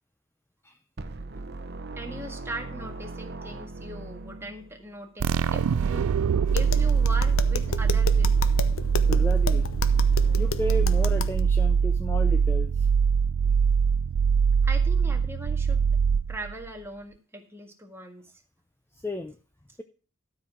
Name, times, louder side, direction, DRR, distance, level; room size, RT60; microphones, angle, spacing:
sound 1, 1.0-5.0, right 2 dB, 50° right, 0.8 m, -39 dB
voice 1, 2.0-6.1 6.5-8.6 14.6-15.8 16.3-18.3, right 1 dB, 10° right, 3 dB, 1.6 m, -40 dB
sound 2, 5.2-16.7, right 6 dB, 90° right, 0.4 m, -23 dB
Tap, 6.5-11.4, left 4 dB, 75° left, 0.9 m, -33 dB
voice 2, 9.1-9.7 10.3-12.9 19.0-19.4, left 1 dB, 10° left, 6 dB, 0.5 m, -33 dB
12.5 x 5.1 x 6.3 m, 0.38 s
head